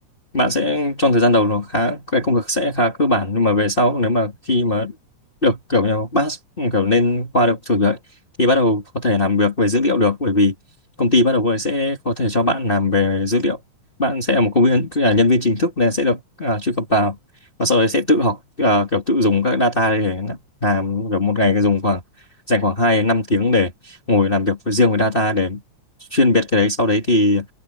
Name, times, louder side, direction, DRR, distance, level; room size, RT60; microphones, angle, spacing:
voice 1, 0.3-4.9 5.4-8.0 8.4-10.5 11.0-13.6 14.0-17.2 17.6-22.0 22.5-25.6 26.1-27.5, left 2 dB, 20° left, 2.1 m, -19 dB
omnidirectional pair, 3.5 m